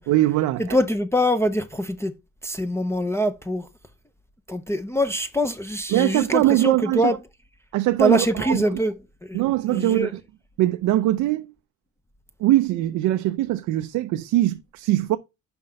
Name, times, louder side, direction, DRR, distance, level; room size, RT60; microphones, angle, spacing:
voice 1, 0.1-0.8 5.9-7.1 7.7-8.6 9.3-10.2 10.6-11.5 12.4-15.2, right 15 dB, 80° right, 0.5 m, -21 dB
voice 2, 0.6-2.1 2.4-3.7 4.5-7.2 8.0-8.9 9.3-9.4 9.7-10.1, equal, 10° left, 0.6 m, -23 dB
5.7 x 4.4 x 5.0 m
cardioid pair, 90°, 30 cm